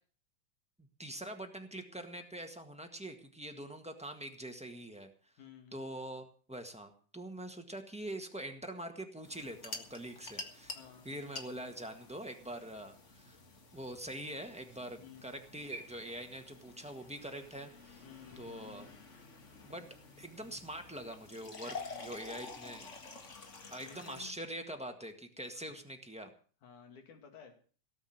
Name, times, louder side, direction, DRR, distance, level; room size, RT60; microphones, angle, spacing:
voice 1, 0.8-5.3 5.7-10.8 11.0-13.4 13.7-18.0 18.4-18.9 19.6-19.9 20.2-22.9 23.7-26.3, right 1 dB, 10° right, 4 dB, 0.4 m, -44 dB
voice 2, 5.4-5.8 10.7-11.1 15.0-15.4 18.0-18.6 21.7-22.2 23.8-24.3 26.6-27.6, left 8 dB, 80° left, 5 dB, 3.9 m, -54 dB
sound 1, 9.2-24.3, left 3 dB, 30° left, 1.5 m, -50 dB
18.0 x 7.9 x 7.9 m, 0.42 s
omnidirectional pair, 3.5 m